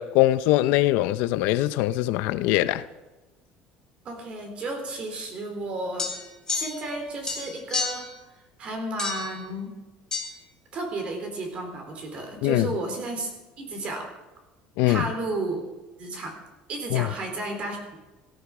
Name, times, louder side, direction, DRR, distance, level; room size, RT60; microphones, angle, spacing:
voice 1, 0.0-2.8 12.4-12.7 14.8-15.0 16.9-17.1, left 16 dB, 75° left, 0.7 m, -22 dB
voice 2, 4.0-6.1 6.5-8.1 8.6-9.8 10.7-13.3 13.6-14.1 14.9-15.7 16.0-16.4 16.7-18.0, right 2 dB, 40° right, 3.9 m, -32 dB
sound 1, 6.0-7.0 7.2-8.1 9.0-9.4 10.1-10.3, left 4 dB, 20° left, 3.4 m, -30 dB
17.0 x 15.0 x 4.9 m
cardioid pair, 155°, 3 cm